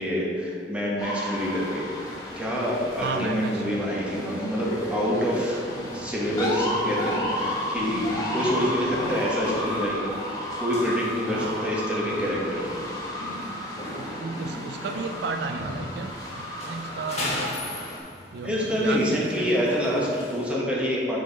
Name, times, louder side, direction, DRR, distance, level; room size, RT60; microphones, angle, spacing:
voice 1, 0.0-1.9 2.4-5.6 5.9-10.1 10.6-12.7 18.4-21.2, equal, 5° right, -5 dB, 1.3 m, -26 dB
sound 1, 1.0-18.0, left 1 dB, 20° left, 1.0 m, -33 dB
sound 2, 1.3-20.5, left 1 dB, 35° left, 1.3 m, -38 dB
voice 2, 3.0-3.9 11.3-11.8 14.0-17.6 18.3-19.6, right 4 dB, 65° right, 6 dB, 0.3 m, -34 dB
6.3 x 4.7 x 5.3 m, 2.3 s
head